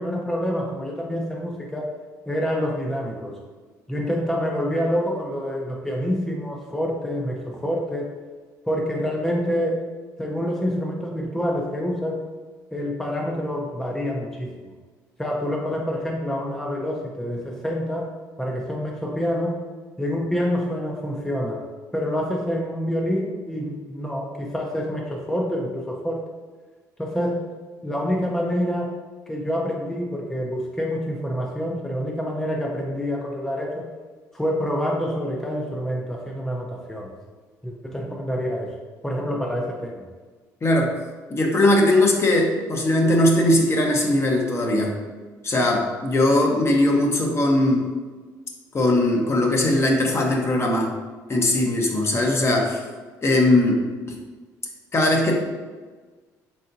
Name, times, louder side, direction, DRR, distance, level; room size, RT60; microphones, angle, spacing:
voice 1, 0.0-1.9 2.3-3.4 3.9-8.2 8.6-9.9 10.2-12.2 12.7-14.7 15.2-18.1 18.4-19.6 20.0-21.6 21.9-26.3 27.0-27.5 27.8-29.0 29.3-33.9 34.3-37.1 37.6-38.8 39.0-40.0, equal, 5° left, -1 dB, 0.6 m, -27 dB
voice 2, 40.6-41.0 41.3-45.0 45.4-47.9 48.7-50.9 51.3-52.8 53.2-53.8 54.9-55.3, left 1 dB, 35° left, 1 dB, 0.8 m, -19 dB
4.1 x 3.6 x 2.5 m, 1.4 s
supercardioid pair, 65°, 8 cm